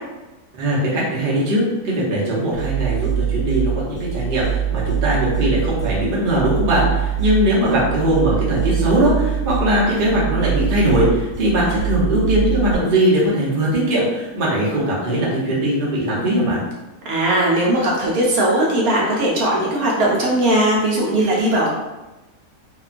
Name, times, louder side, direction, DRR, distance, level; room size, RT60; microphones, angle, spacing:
voice 1, 0.5-16.6, right 1 dB, 45° right, -6 dB, 0.7 m, -20 dB
sound 1, 2.5-12.7, right 9 dB, 75° left, 1.3 m, -23 dB
voice 2, 17.0-21.7, right 1 dB, 70° right, -4 dB, 1.0 m, -18 dB
2.9 x 2.2 x 2.4 m, 1.1 s
omnidirectional pair, 1.7 m